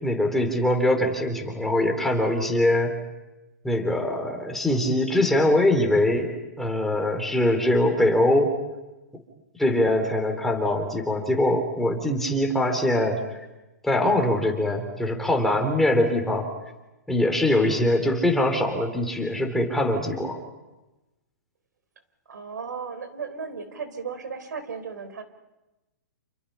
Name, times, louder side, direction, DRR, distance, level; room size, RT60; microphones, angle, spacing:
voice 1, 0.0-3.0 3.6-6.3 6.6-8.6 9.6-13.2 13.8-16.5 17.1-20.4, left 1 dB, 5° left, 3 dB, 3.7 m, -22 dB
voice 2, 22.3-25.2, right 5 dB, 85° right, 10 dB, 4.0 m, -35 dB
29.5 x 28.5 x 5.7 m, 1.0 s
hypercardioid pair, 145°, 9 cm